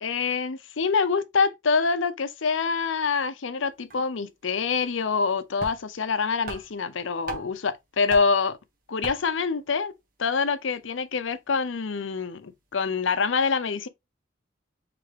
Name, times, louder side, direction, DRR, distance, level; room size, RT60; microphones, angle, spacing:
voice 1, 0.0-8.6 8.9-13.9, left 5 dB, 80° left, 0.6 m, -26 dB
sound 1, 3.6-3.7 3.9-4.1 5.2-5.3 5.6-6.1 6.5-7.7 8.1-8.5 9.0-9.5, right 3 dB, 45° right, 1.4 m, -38 dB
4.7 x 3.4 x 3.2 m
head